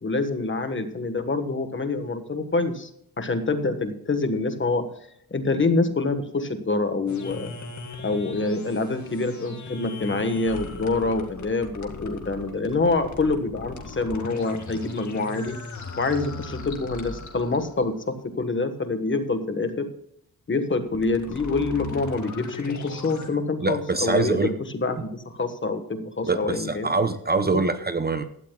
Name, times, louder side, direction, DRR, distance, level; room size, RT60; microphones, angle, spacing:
voice 1, 0.0-2.9 3.2-4.9 5.3-7.5 8.0-15.6 16.0-19.9 20.5-26.9 27.5-27.6, left 3 dB, 30° left, 8 dB, 1.4 m, -26 dB
sound 1, 7.1-17.8 20.8-23.3, left 3 dB, 50° left, 2.0 m, -38 dB
voice 2, 23.6-24.5 26.2-28.2, right 3 dB, 25° right, 9 dB, 0.7 m, -24 dB
16.5 x 12.5 x 2.4 m, 0.73 s
wide cardioid pair, 165°, 36 cm